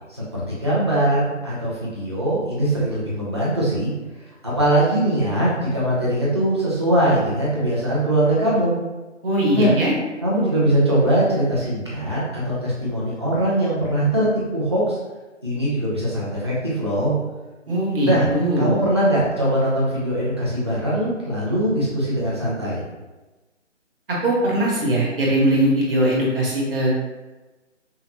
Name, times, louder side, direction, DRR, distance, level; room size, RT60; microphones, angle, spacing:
voice 1, 0.1-3.9 4.4-8.7 9.5-9.8 10.2-15.0 15.4-17.1 18.0-18.3 18.6-22.8, right 1 dB, 20° right, -8 dB, 0.7 m, -21 dB
voice 2, 9.2-9.9 17.7-18.7 24.1-26.9, right 1 dB, 45° right, -5 dB, 1.3 m, -20 dB
5.5 x 2.0 x 2.8 m, 1.2 s
hypercardioid pair, 170°, 37 cm